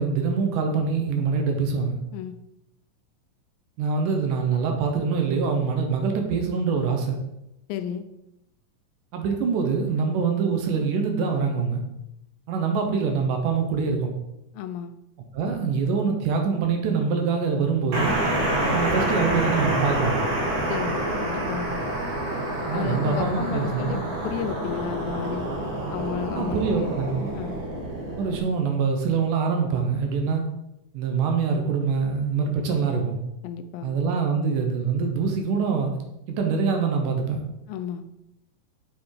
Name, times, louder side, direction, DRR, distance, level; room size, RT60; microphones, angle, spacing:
voice 1, 0.0-2.0 3.8-7.2 9.1-11.8 12.5-14.1 15.3-18.2 18.7-20.2 22.7-24.0 26.3-27.3 28.2-30.4 30.9-33.2 33.8-36.0 36.3-37.4, right 5 dB, 70° right, 3 dB, 2.5 m, -24 dB
voice 2, 7.7-8.0 14.5-14.9 20.7-21.8 22.7-25.5 25.9-26.9 27.3-27.6 30.2-30.4 33.4-33.9 37.7-38.0, left 8 dB, 85° left, 9 dB, 2.4 m, -33 dB
sound 1, 17.9-28.4, right 1 dB, 45° right, 1.7 m, -27 dB
7.2 x 6.0 x 4.8 m, 0.86 s
omnidirectional pair, 4.0 m